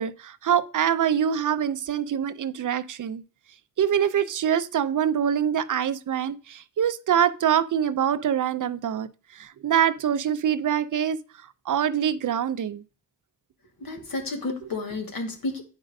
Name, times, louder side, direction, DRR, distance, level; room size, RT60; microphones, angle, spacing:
voice 1, 0.0-3.2 3.8-11.2 11.7-12.8, right 9 dB, 60° right, 0.5 m, -24 dB
voice 2, 13.8-15.6, left 2 dB, 70° left, 1.6 m, -31 dB
8.9 x 5.1 x 2.6 m
cardioid pair, 55°, 36 cm